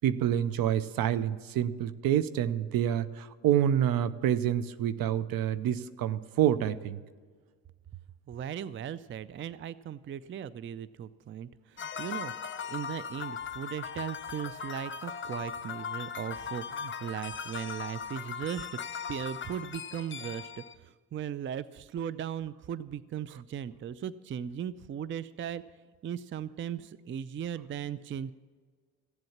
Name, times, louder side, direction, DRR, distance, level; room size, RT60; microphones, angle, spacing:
voice 1, 0.0-7.0, right 10 dB, 65° right, 15 dB, 0.7 m, -27 dB
voice 2, 8.3-12.3 12.7-18.7 19.1-25.6 26.0-28.3, right 9 dB, 35° right, 17 dB, 0.4 m, -38 dB
sound 1, 11.8-20.7, left 6 dB, 30° left, 0.8 m, -39 dB
15.0 x 7.8 x 7.2 m, 1.5 s
hypercardioid pair, 55°, 38 cm